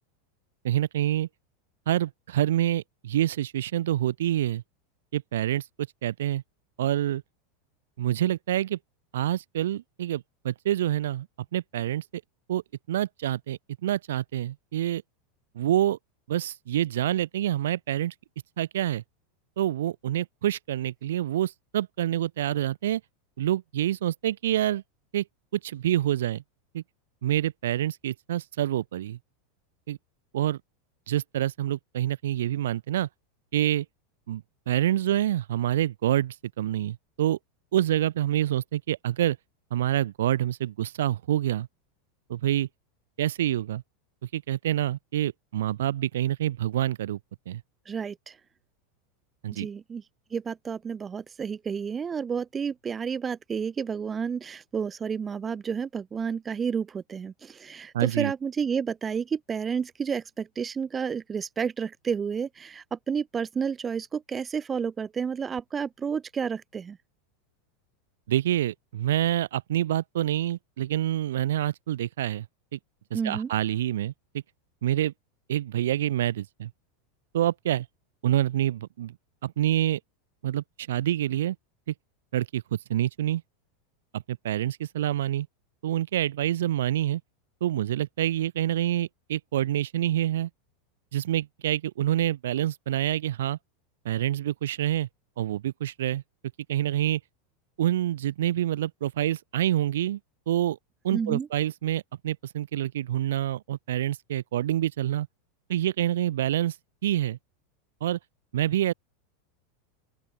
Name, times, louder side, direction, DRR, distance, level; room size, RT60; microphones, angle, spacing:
voice 1, 0.6-1.3 1.9-4.6 5.1-5.6 6.0-6.4 6.8-7.2 8.0-8.8 9.1-11.3 11.5-12.0 12.5-12.6 12.9-15.0 15.5-16.0 16.3-18.1 18.6-19.0 19.6-23.0 23.4-24.8 25.1-25.2 25.5-26.4 26.7-26.8 27.2-29.2 29.9-30.0 30.3-30.6 31.1-33.1 33.5-33.8 34.3-37.4 37.7-39.4 39.7-41.7 42.3-42.7 43.2-43.8 44.3-47.2 47.5-47.6 49.4-49.7 57.9-58.3 68.3-72.5 72.7-72.8 73.1-74.4 74.8-75.1 75.5-76.7 77.3-77.9 78.2-79.1 79.4-80.0 80.4-81.5 81.9-82.0 82.3-83.4 84.1-85.5 85.8-87.2 87.6-90.5 91.1-93.6 94.0-95.1 95.4-96.2 96.7-97.2 97.8-100.2 100.5-100.8 101.0-105.3 105.7-106.7 107.0-107.4 108.0-108.2 108.5-108.9, right 12 dB, 85° right, 1.3 m, -27 dB
voice 2, 47.8-48.4 49.5-67.0 73.1-73.5 101.1-101.5, right 6 dB, 20° right, 3.2 m, -31 dB
open air
supercardioid pair, 130°, 0 cm